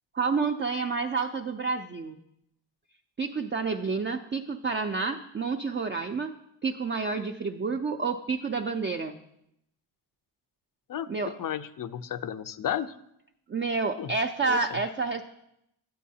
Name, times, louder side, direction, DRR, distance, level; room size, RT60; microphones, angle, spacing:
voice 1, 0.1-2.2 3.2-6.3 6.6-9.2 11.1-11.3 13.5-15.2, right 4 dB, 25° right, 4 dB, 0.4 m, -29 dB
voice 2, 11.4-12.9 14.0-14.1 14.5-14.8, left 10 dB, 45° left, 13 dB, 0.5 m, -33 dB
10.0 x 7.5 x 2.7 m, 0.80 s
cardioid pair, 70°, 47 cm